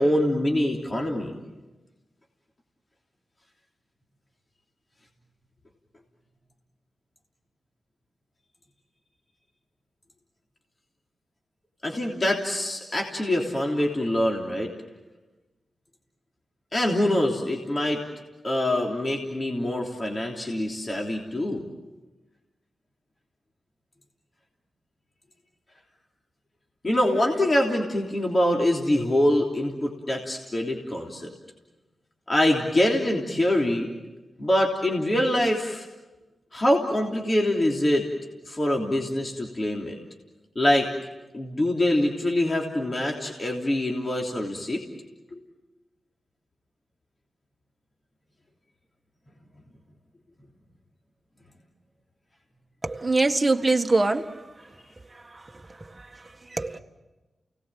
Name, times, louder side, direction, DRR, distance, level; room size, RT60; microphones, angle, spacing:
voice 1, 0.0-1.3 11.8-14.7 16.7-18.0 18.4-21.6 26.8-31.3 32.3-33.9 34.4-35.8 36.5-38.1 38.5-40.0 40.5-40.9 41.3-44.8 45.3-45.4, left 1 dB, 35° left, 0 dB, 3.2 m, -24 dB
voice 2, 52.8-54.4 56.5-56.8, right 3 dB, 25° right, 5 dB, 1.6 m, -23 dB
29.5 x 19.0 x 7.7 m, 1.2 s
cardioid pair, 55°, 0 cm